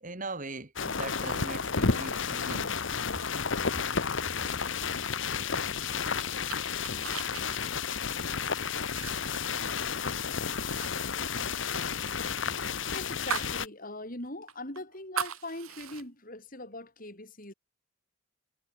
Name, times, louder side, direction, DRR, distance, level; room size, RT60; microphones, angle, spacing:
voice 1, 0.0-2.8, right 2 dB, 40° right, 2.4 m, -40 dB
sound 1, 0.8-13.7, left 5 dB, 60° left, 1.2 m, -32 dB
sound 2, 5.6-10.2 10.5-10.9 11.1-13.6 13.9-14.0 14.5-16.0, right 7 dB, 90° right, 1.7 m, -39 dB
voice 2, 12.9-17.5, left 2 dB, 40° left, 6.1 m, -41 dB
head